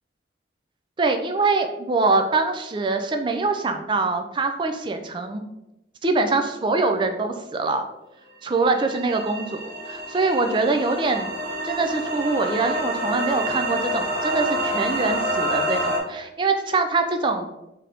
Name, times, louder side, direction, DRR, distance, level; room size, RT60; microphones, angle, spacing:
voice 1, 1.0-5.4 6.0-7.8 8.4-11.3 11.6-17.5, right 3 dB, 25° right, 6 dB, 0.3 m, -24 dB
sound 1, 8.7-16.0, equal, 55° right, 0.7 m, -27 dB
3.8 x 2.8 x 3.3 m, 0.91 s
head